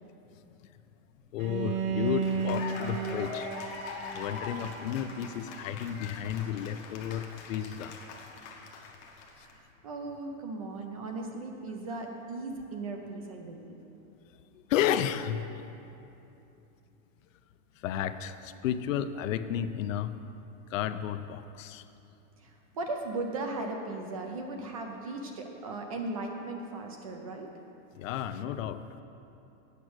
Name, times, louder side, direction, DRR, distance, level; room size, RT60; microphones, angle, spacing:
voice 1, 1.3-3.7 4.1-8.3 14.7-15.5 17.8-20.2 20.7-21.8 28.0-29.0, left 10 dB, 70° left, 11 dB, 0.5 m, -32 dB
Bowed string instrument, 1.4-6.4, right 6 dB, 85° right, 0.8 m, -35 dB
Cheering / Applause, 2.0-9.5, left 4 dB, 35° left, 0.7 m, -43 dB
voice 2, 9.3-13.8 22.4-27.5, right 2 dB, 30° right, 3 dB, 0.3 m, -37 dB
8.2 x 6.0 x 6.2 m, 2.9 s
supercardioid pair, 170°, 41 cm